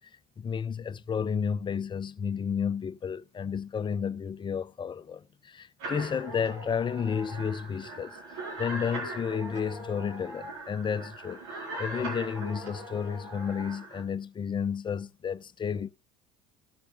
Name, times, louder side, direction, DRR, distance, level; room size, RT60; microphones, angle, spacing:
voice 1, 0.4-8.2 8.6-11.4 11.8-15.9, left 7 dB, 25° left, 0.6 m, -32 dB
sound 1, 5.8-14.0, right 1 dB, 75° right, 4.6 m, -40 dB
17.5 x 6.8 x 2.5 m
hypercardioid pair, 75°, 18 cm